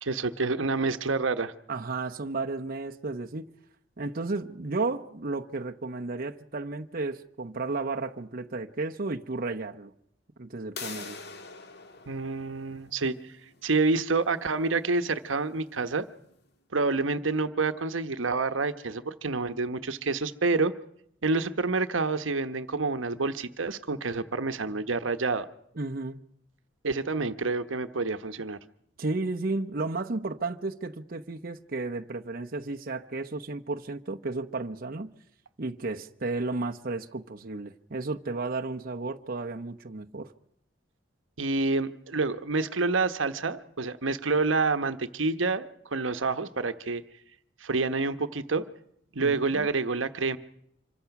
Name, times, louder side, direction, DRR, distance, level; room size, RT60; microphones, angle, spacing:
voice 1, 0.0-1.5 12.1-13.1 13.6-16.1 16.7-20.7 21.2-25.5 26.8-28.6 41.4-47.0 47.6-48.7 49.1-50.4, right 3 dB, 85° right, 1.1 m, -28 dB
voice 2, 1.7-3.5 4.0-9.9 10.4-11.2 25.8-26.2 29.0-35.1 35.6-40.3 49.2-49.7, right 3 dB, 50° right, 0.9 m, -33 dB
sound 1, 10.8-16.3, left 5 dB, 60° left, 1.8 m, -46 dB
26.0 x 23.0 x 5.9 m
head